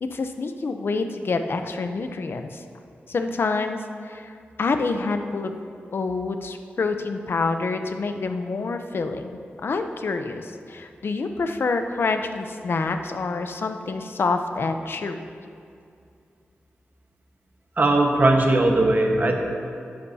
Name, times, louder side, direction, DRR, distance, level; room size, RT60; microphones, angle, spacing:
voice 1, 0.0-2.6 3.1-4.3 4.6-5.5 5.9-15.2, left 3 dB, 60° left, 7 dB, 0.6 m, -27 dB
voice 2, 17.8-19.4, right 2 dB, 45° right, 2 dB, 1.2 m, -19 dB
13.5 x 10.5 x 2.8 m, 2.4 s
wide cardioid pair, 115°, 4 cm